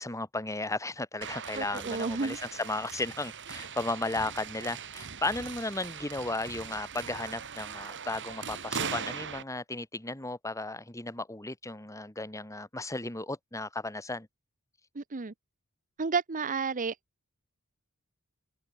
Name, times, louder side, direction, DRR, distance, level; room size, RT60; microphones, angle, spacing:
voice 1, 0.0-14.3, left 2 dB, 15° left, 2.4 m, -35 dB
sound 1, 1.2-9.4, right 6 dB, 55° right, 7.7 m, -40 dB
voice 2, 1.5-2.4 15.0-15.3 16.0-17.0, right 4 dB, 35° right, 0.8 m, -31 dB
open air
head